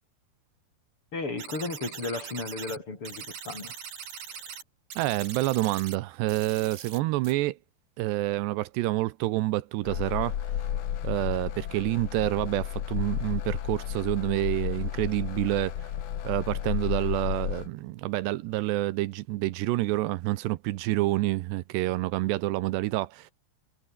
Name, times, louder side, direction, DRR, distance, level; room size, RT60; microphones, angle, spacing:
voice 1, 1.1-3.7, left 3 dB, 30° left, 5.2 m, -34 dB
sound 1, 1.4-2.8 3.1-4.6 4.9-6.0 6.3-7.0 7.2-7.3, right 8 dB, 60° right, 5.3 m, -41 dB
voice 2, 5.0-7.6 8.0-10.4 11.0-15.9 16.2-23.3, right 17 dB, 80° right, 2.9 m, -28 dB
sound 2, 9.8-17.7, left 10 dB, 65° left, 1.6 m, -32 dB
omnidirectional pair, 5.0 m